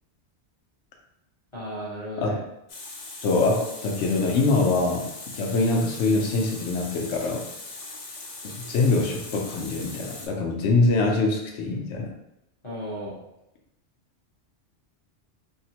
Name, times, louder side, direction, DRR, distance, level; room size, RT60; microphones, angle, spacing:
voice 1, 1.5-2.4 12.6-13.2, equal, 25° left, -8 dB, 1.0 m, -35 dB
Water tap faucet, 2.7-10.3, left 3 dB, 50° left, 0.4 m, -40 dB
voice 2, 3.2-7.5 8.7-12.1, left 3 dB, 80° left, 1 dB, 1.0 m, -24 dB
3.6 x 2.0 x 2.8 m, 0.85 s
omnidirectional pair, 1.2 m